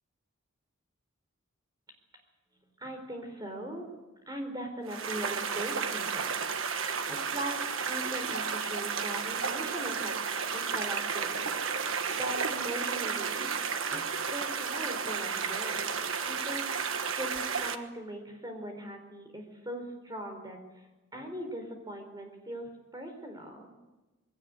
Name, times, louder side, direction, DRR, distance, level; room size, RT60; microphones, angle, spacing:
voice 1, 2.8-3.8 4.3-6.5 7.1-7.6 7.9-10.2 10.5-11.5 11.8-13.5 13.9-16.0 16.2-20.6 21.1-23.7, right 1 dB, 20° right, 4 dB, 4.3 m, -40 dB
sound 1, 4.9-17.8, right 6 dB, 75° right, 1.3 m, -32 dB
21.0 x 17.5 x 9.7 m, 1.1 s
head